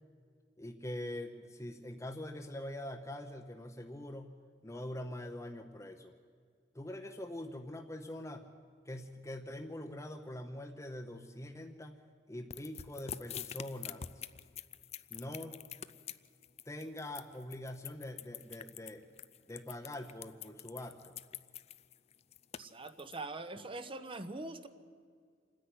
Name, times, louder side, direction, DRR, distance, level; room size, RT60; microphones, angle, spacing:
voice 1, 0.6-4.4 4.6-6.1 6.7-8.5 8.9-12.0 12.3-14.0 15.1-15.6 16.7-19.0 19.5-21.1, left 1 dB, 15° left, 4 dB, 0.8 m, -44 dB
sound 1, 12.5-23.1, left 9 dB, 35° left, 0.5 m, -46 dB
voice 2, 22.6-24.7, right 2 dB, 30° right, 10 dB, 0.9 m, -43 dB
27.5 x 10.0 x 9.6 m, 2.1 s
head